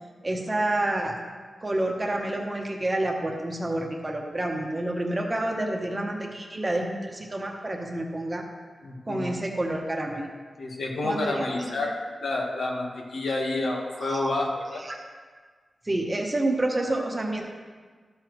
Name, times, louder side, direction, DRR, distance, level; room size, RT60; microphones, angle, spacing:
voice 1, 0.2-1.1 1.6-8.4 9.1-10.3 11.0-11.7 14.0-14.3 14.8-15.0 15.8-17.4, right 1 dB, 20° right, 1 dB, 1.0 m, -28 dB
voice 2, 8.8-9.3 10.6-11.9 12.2-14.8, left 2 dB, 85° left, 0 dB, 1.3 m, -29 dB
12.5 x 6.9 x 3.1 m, 1.5 s
wide cardioid pair, 155°, 0 cm